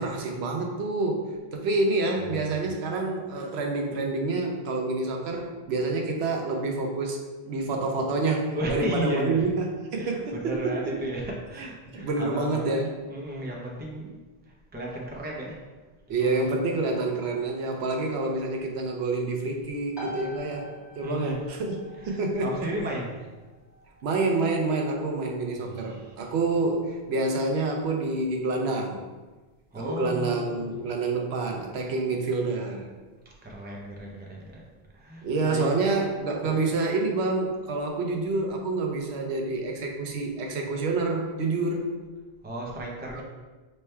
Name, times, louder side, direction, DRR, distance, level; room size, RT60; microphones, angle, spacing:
voice 1, 0.0-7.2 7.4-10.9 11.9-12.9 16.1-20.7 21.0-21.8 22.0-22.7 24.0-29.0 29.8-32.9 35.2-41.9 43.1-43.2, right 3 dB, 90° right, 1 dB, 0.9 m, -28 dB
voice 2, 8.5-9.5 10.0-12.7 13.1-14.2 14.4-15.7 16.2-16.5 21.0-21.4 22.0-23.2 25.6-26.2 29.7-30.7 33.4-35.8 36.3-36.5 42.4-43.2, right 1 dB, 15° right, -2 dB, 0.3 m, -34 dB
sound 1, 19.9-34.4, left 1 dB, 25° left, 0.7 m, -48 dB
3.2 x 2.2 x 4.2 m, 1.3 s
omnidirectional pair, 1.1 m